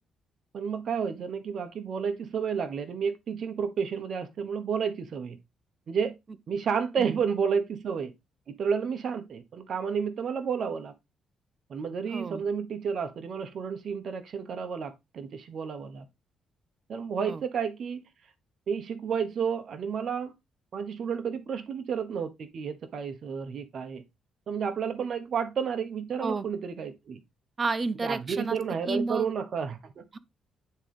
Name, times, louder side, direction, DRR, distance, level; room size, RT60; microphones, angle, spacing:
voice 1, 0.5-5.4 5.9-6.2 6.5-8.1 8.5-10.9 11.7-16.0 16.9-18.0 18.7-20.3 20.7-24.0 24.5-27.2 28.0-30.0, right 6 dB, 55° right, 1.1 m, -31 dB
voice 2, 12.1-12.4 17.3-17.4 26.2-26.5 27.6-28.6 28.9-29.3 30.1-30.2, right 3 dB, 35° right, 0.6 m, -31 dB
9.0 x 3.8 x 3.4 m
cardioid pair, 90°, 0 cm